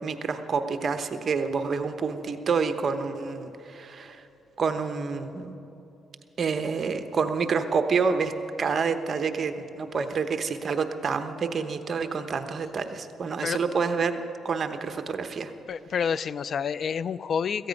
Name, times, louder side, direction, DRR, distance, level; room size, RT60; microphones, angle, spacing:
voice 1, 0.0-4.2 4.6-5.6 6.4-8.3 8.6-14.1 14.4-15.5, right 5 dB, 45° right, 8 dB, 1.0 m, -28 dB
voice 2, 15.7-17.7, left 7 dB, 55° left, 18 dB, 0.3 m, -28 dB
17.0 x 14.5 x 5.3 m, 2.8 s
cardioid pair, 90°, 0 cm